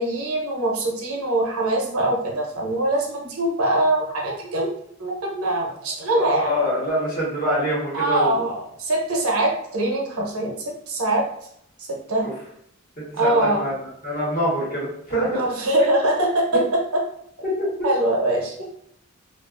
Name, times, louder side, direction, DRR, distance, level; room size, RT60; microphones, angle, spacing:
voice 1, 0.0-4.7 5.0-6.5 7.9-10.6 10.9-11.2 11.8-12.3 13.2-13.6 15.4-16.4 17.8-18.7, right 1 dB, 80° right, -1 dB, 0.7 m, -23 dB
voice 2, 6.1-8.4 12.2-12.3 13.0-13.7 14.0-15.4 16.5-16.6 17.4-17.7, equal, 40° left, -7 dB, 1.2 m, -25 dB
2.4 x 2.4 x 2.4 m, 0.72 s
head